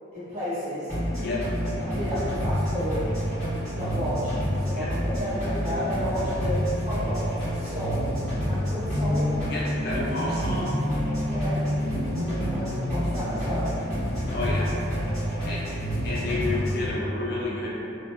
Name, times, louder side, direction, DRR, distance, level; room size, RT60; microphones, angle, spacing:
voice 1, 0.1-0.9 1.8-3.4 3.7-9.3 11.3-11.6 12.0-13.7, equal, 30° right, -13 dB, 1.0 m, -32 dB
sound 1, 0.9-16.9, equal, 15° right, 1.4 m, -28 dB
voice 2, 9.5-10.8 14.3-14.7 15.4-15.6 16.0-17.7, left 2 dB, 45° left, -5 dB, 0.4 m, -30 dB
2.9 x 2.4 x 2.2 m, 2.7 s
head